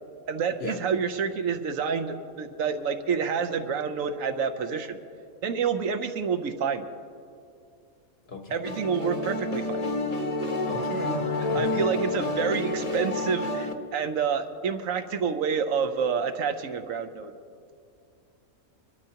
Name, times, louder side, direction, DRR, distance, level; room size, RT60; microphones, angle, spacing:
voice 1, 0.3-5.0 5.4-6.9 8.5-9.8 11.4-17.3, right 6 dB, 70° right, 7 dB, 1.1 m, -28 dB
voice 2, 8.3-8.6 10.7-12.0, left 2 dB, 50° left, 5 dB, 1.0 m, -37 dB
sound 1, 8.6-13.7, left 2 dB, 30° left, 0.9 m, -29 dB
24.5 x 12.5 x 2.9 m, 2.4 s
omnidirectional pair, 1.5 m